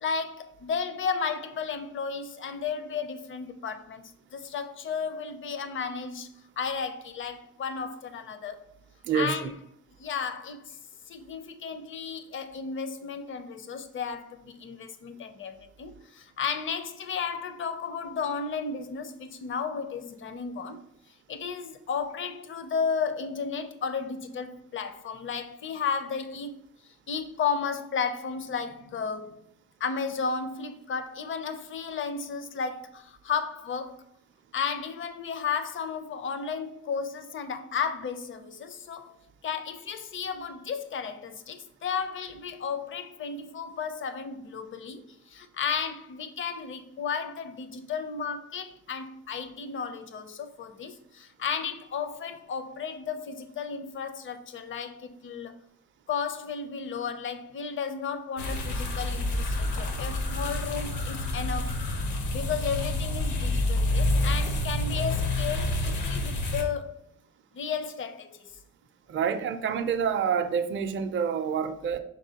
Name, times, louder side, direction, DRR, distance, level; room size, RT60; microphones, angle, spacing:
voice 1, 0.0-6.3 6.6-8.7 9.1-9.6 10.0-10.8 11.1-20.8 21.3-26.5 27.1-29.4 29.8-34.0 34.5-39.2 39.4-55.6 56.1-61.8 62.3-67.0 67.5-68.6, left 6 dB, 40° left, 0.5 m, -33 dB
voice 2, 9.0-9.5 69.1-72.0, right 7 dB, 40° right, 0.5 m, -27 dB
sound 1, 58.4-66.6, left 1 dB, 75° left, 0.9 m, -28 dB
5.2 x 3.4 x 2.8 m
cardioid pair, 90°, 30 cm